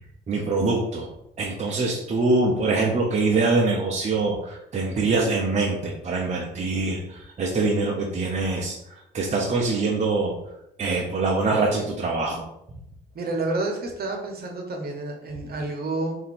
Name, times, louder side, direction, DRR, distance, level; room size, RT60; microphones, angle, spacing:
voice 1, 0.3-1.1 1.4-8.8 9.1-10.3 10.8-12.4, right 3 dB, 35° right, -2 dB, 0.7 m, -24 dB
voice 2, 13.1-16.2, right 2 dB, 50° right, 2 dB, 1.1 m, -29 dB
4.3 x 2.7 x 4.2 m, 0.82 s
cardioid pair, 90°, 20 cm